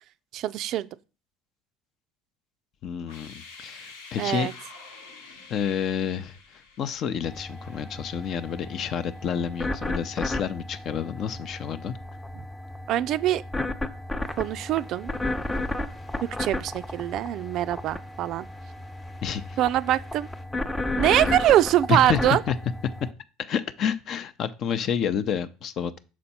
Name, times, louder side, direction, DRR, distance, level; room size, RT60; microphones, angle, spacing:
voice 1, 0.3-0.9 4.2-4.5 12.9-13.4 14.4-15.1 16.4-18.5 19.6-20.3 21.0-22.4, right 13 dB, 60° right, 0.3 m, -23 dB
voice 2, 2.8-4.5 5.5-6.4 6.8-11.9 19.2-19.6 21.9-22.2 22.5-22.6 23.4-26.0, left 8 dB, 50° left, 0.6 m, -29 dB
sound 1, 3.0-9.9, left 4 dB, 85° left, 1.1 m, -48 dB
sound 2, 7.2-23.1, left 2 dB, 10° left, 0.6 m, -33 dB
sound 3, 14.2-20.4, left 3 dB, 30° left, 1.0 m, -54 dB
6.1 x 4.3 x 4.2 m
hypercardioid pair, 75°, 0 cm